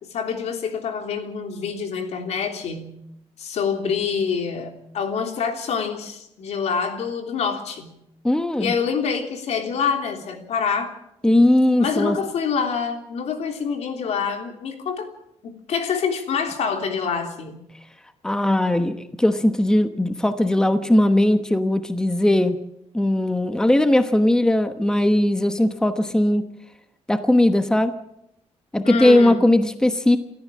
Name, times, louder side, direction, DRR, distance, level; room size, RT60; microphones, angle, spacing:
voice 1, 0.1-3.0 3.4-7.9 8.6-10.9 11.8-15.1 15.4-17.6 28.8-29.4, left 6 dB, 75° left, 5 dB, 3.3 m, -26 dB
voice 2, 8.2-8.7 11.2-12.2 18.2-22.6 22.9-26.4 27.1-28.0 28.7-30.2, left 1 dB, 5° left, 9 dB, 1.0 m, -19 dB
28.0 x 14.0 x 7.5 m, 0.81 s
wide cardioid pair, 150°, 11 cm